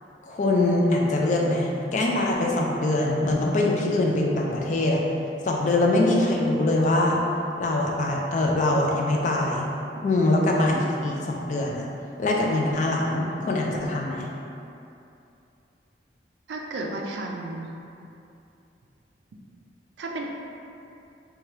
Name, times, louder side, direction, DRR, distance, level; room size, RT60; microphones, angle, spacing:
voice 1, 0.2-5.0 5.4-7.2 7.6-9.7 10.0-11.8 12.2-14.3, left 2 dB, 40° left, -1 dB, 0.3 m, -23 dB
voice 2, 16.5-17.7 20.0-20.3, right 2 dB, 75° right, 0 dB, 0.3 m, -33 dB
2.8 x 2.3 x 3.2 m, 2.7 s
head